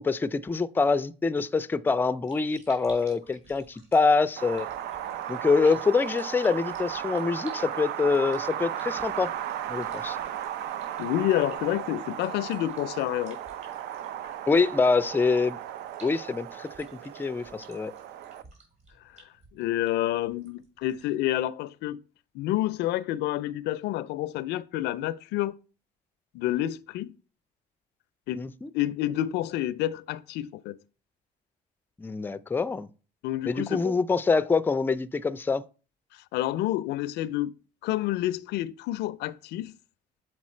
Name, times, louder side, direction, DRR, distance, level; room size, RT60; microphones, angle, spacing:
voice 1, 0.0-4.7 5.3-9.3 9.7-10.2 14.5-15.6 16.0-16.9 17.2-17.9 28.4-28.7 32.0-32.9 33.5-35.6, left 4 dB, 10° left, 0.4 m, -25 dB
sound 1, 2.0-21.2, right 3 dB, 40° right, 3.5 m, -55 dB
Wind, 4.4-18.4, right 10 dB, 80° right, 0.6 m, -35 dB
voice 2, 11.0-13.4 19.1-19.2 19.5-22.0 22.3-25.5 26.3-27.1 28.3-28.5 28.7-30.8 33.2-34.0 36.1-37.5 37.8-39.7, left 14 dB, 80° left, 0.4 m, -29 dB
7.2 x 4.4 x 4.3 m
cardioid pair, 110°, 17 cm